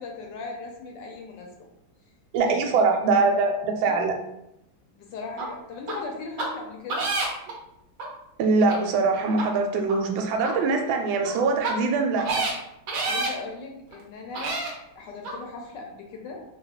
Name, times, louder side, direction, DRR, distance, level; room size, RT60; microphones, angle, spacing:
voice 1, 0.0-1.7 2.4-2.7 3.8-4.0 5.0-7.1 13.0-14.6 15.0-16.4, left 3 dB, 75° left, 1 dB, 1.1 m, -38 dB
voice 2, 2.3-4.1 8.4-12.3, right 4 dB, 80° right, 3 dB, 1.3 m, -23 dB
sound 1, 5.4-5.5 5.9-6.0 6.4-6.5 6.9-7.5 8.0-8.1 8.7-8.8 9.3-9.4 9.9-10.0 10.4-10.5 11.2-11.3 11.6-11.7 12.2-12.5 12.9-13.3 13.9-14.0 14.3-14.7 15.2-15.3, right 3 dB, 65° right, 0.9 m, -28 dB
3.2 x 2.3 x 3.5 m, 0.83 s
omnidirectional pair, 2.2 m